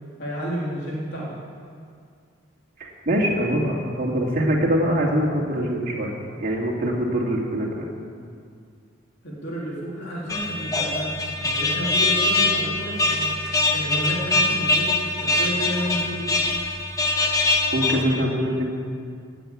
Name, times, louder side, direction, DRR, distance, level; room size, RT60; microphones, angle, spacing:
voice 1, 0.2-1.3 9.2-11.1 11.4-13.4 13.7-16.3, equal, 55° left, -6 dB, 3.8 m, -31 dB
voice 2, 2.8-6.1 6.4-7.9 17.3-17.4 17.7-18.7, equal, 45° right, -3 dB, 2.7 m, -23 dB
sound 1, 10.3-18.0, left 2 dB, 15° left, 1.3 m, -23 dB
18.5 x 7.9 x 8.8 m, 2.2 s
head